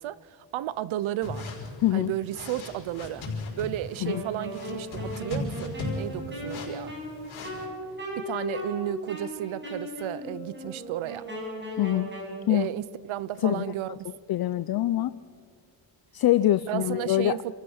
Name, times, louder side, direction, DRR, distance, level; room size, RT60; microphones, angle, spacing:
voice 1, 0.0-1.5 1.9-3.3 3.6-6.9 8.2-11.3 12.5-14.1 14.4-14.5 16.7-17.5, right 13 dB, 75° right, 0.8 m, -33 dB
sound 1, 1.2-7.7, left 3 dB, 75° left, 5.5 m, -37 dB
voice 2, 1.8-2.1 4.0-4.2 11.8-12.1 12.5-12.7 13.4-13.6 14.3-15.1 16.1-17.4, left 14 dB, 50° left, 0.5 m, -24 dB
Wind instrument woodwind instrument, 4.0-12.4, equal, 20° right, 6.1 m, -37 dB
27.5 x 14.5 x 6.4 m
cardioid pair, 125°, 48 cm